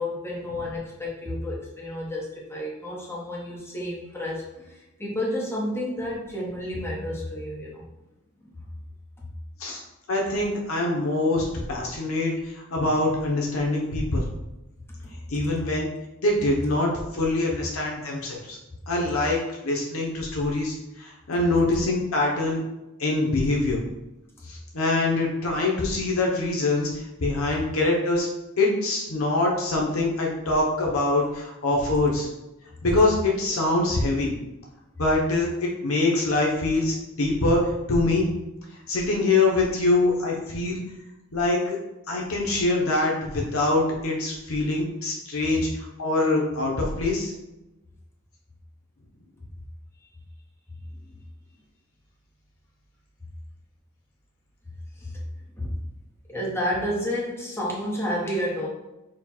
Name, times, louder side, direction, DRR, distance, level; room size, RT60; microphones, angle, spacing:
voice 1, 0.0-7.9 8.4-8.5 15.0-15.2 33.6-33.7 55.0-55.3 55.5-55.7 56.3-58.7, left 1 dB, 10° left, -4 dB, 0.9 m, -31 dB
voice 2, 10.1-14.2 15.3-15.9 16.2-18.6 18.9-19.4 19.6-22.6 23.0-23.8 24.4-28.3 28.6-32.3 32.8-34.3 35.0-38.3 38.9-40.8 41.3-41.8 42.1-47.3, left 2 dB, 80° left, -1 dB, 0.9 m, -24 dB
4.4 x 2.3 x 4.3 m, 0.98 s
head